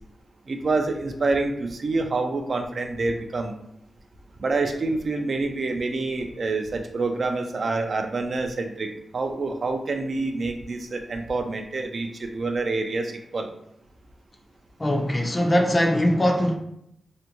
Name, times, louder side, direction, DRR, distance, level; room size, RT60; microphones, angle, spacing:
voice 1, 0.5-3.5 4.4-13.5, right 3 dB, 55° right, 4 dB, 0.3 m, -27 dB
voice 2, 14.8-16.6, equal, 25° left, 2 dB, 0.4 m, -21 dB
2.5 x 2.2 x 2.8 m, 0.76 s
wide cardioid pair, 85°, 0 cm